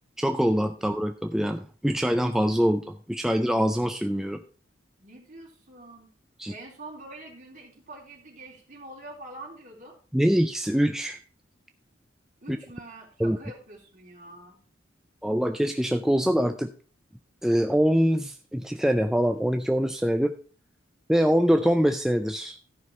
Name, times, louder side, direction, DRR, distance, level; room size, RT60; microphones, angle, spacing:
voice 1, 0.2-4.4 6.4-6.5 10.1-11.2 12.5-12.6 13.2-13.4 15.2-16.7 17.4-20.3 21.1-22.6, equal, 5° right, 6 dB, 0.4 m, -24 dB
voice 2, 5.0-6.1 6.5-10.0 12.4-14.6, right 2 dB, 40° right, -2 dB, 3.5 m, -45 dB
13.5 x 5.8 x 4.3 m, 0.40 s
head